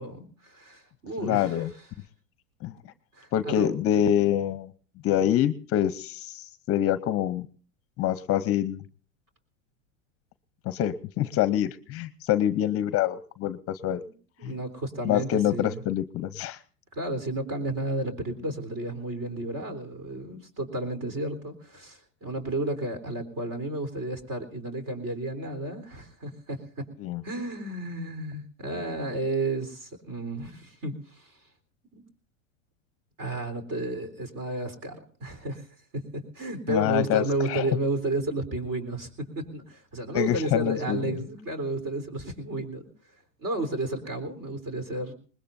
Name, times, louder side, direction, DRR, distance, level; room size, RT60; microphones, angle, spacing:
voice 1, 0.0-1.7 3.1-3.7 14.0-14.1 14.4-15.8 16.9-26.9 27.2-31.4 31.9-32.0 33.2-42.9 43.4-45.1, right 2 dB, 40° right, 9 dB, 3.8 m, -32 dB
voice 2, 1.2-1.7 2.6-2.7 3.3-4.7 5.0-7.5 8.0-8.8 10.6-14.0 14.4-14.5 15.0-16.6 27.0-27.2 36.7-37.6 40.1-41.2, left 11 dB, 35° left, 14 dB, 0.8 m, -26 dB
22.0 x 20.5 x 2.6 m, 0.41 s
supercardioid pair, 115°, 38 cm